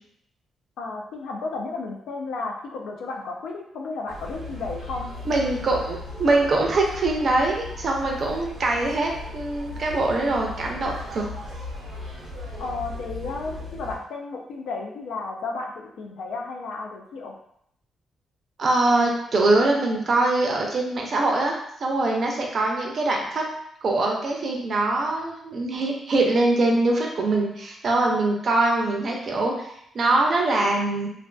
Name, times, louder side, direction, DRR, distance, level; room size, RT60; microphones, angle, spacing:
voice 1, 0.8-5.1 12.6-17.3, left 3 dB, 90° left, 1 dB, 0.4 m, -33 dB
sound 1, 4.1-14.0, left 2 dB, 90° right, 0.7 m, -37 dB
voice 2, 5.3-11.3 18.6-23.4 23.8-29.7 29.9-31.1, right 2 dB, 45° right, 0 dB, 0.5 m, -23 dB
2.4 x 2.4 x 2.2 m, 0.74 s
cardioid pair, 135°, 0 cm